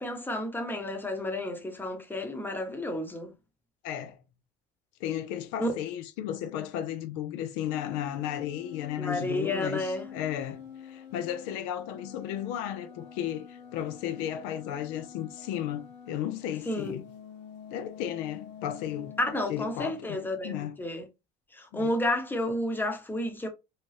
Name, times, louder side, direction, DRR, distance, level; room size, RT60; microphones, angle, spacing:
voice 1, 0.0-3.3 5.6-5.7 9.0-10.1 16.7-17.0 19.2-21.1 21.5-23.5, left 1 dB, 10° left, 0.8 m, -31 dB
voice 2, 3.8-4.2 5.0-17.1 17.7-19.2 19.5-20.8 21.7-21.9, left 11 dB, 85° left, 0.5 m, -34 dB
sound 1, 7.6-16.2 16.4-19.8, left 8 dB, 60° left, 1.0 m, -47 dB
2.8 x 2.2 x 3.1 m
supercardioid pair, 95°, 20 cm